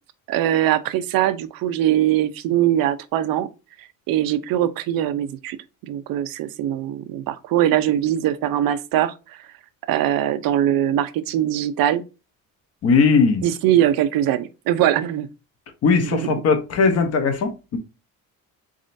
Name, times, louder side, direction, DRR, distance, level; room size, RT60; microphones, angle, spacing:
voice 1, 0.3-3.5 4.1-5.6 5.8-9.5 9.9-12.0 13.4-15.3 16.1-16.3, right 12 dB, 85° right, 0.6 m, -21 dB
voice 2, 12.8-13.4 15.8-17.8, left 4 dB, 45° left, 0.8 m, -18 dB
4.2 x 3.7 x 2.5 m
cardioid pair, 180°, 34 cm